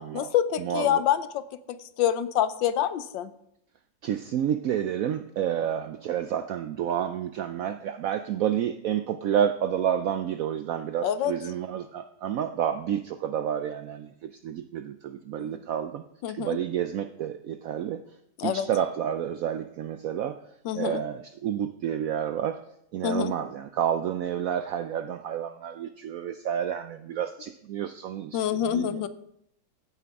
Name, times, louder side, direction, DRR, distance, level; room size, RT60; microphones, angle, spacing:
voice 1, 0.0-1.4 1.7-3.3 11.0-11.3 15.5-15.6 16.2-16.6 18.4-18.7 20.6-21.0 23.0-23.3 28.3-29.1, left 10 dB, 80° left, 13 dB, 1.4 m, -26 dB
voice 2, 0.6-1.0 4.0-18.0 18.4-20.4 20.7-22.6 22.9-29.1, right 9 dB, 85° right, 9 dB, 0.7 m, -30 dB
15.0 x 9.2 x 3.6 m, 0.76 s
omnidirectional pair, 2.0 m